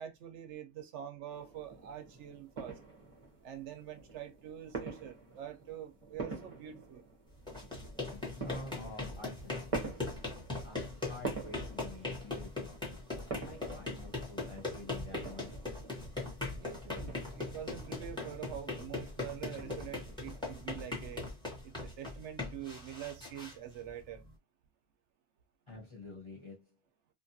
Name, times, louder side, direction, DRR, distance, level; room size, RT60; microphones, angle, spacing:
voice 1, 0.0-2.8 3.4-7.0 16.5-21.3 21.6-24.2, right 10 dB, 75° right, 0.9 m, -45 dB
sound 1, 1.3-20.9, right 4 dB, 35° right, 0.7 m, -47 dB
sound 2, 7.3-24.3, left 3 dB, 5° left, 1.1 m, -40 dB
voice 2, 8.0-10.1 10.6-12.8 13.5-15.7 25.7-26.7, left 2 dB, 25° left, 1.1 m, -49 dB
2.7 x 2.3 x 2.6 m
omnidirectional pair, 1.2 m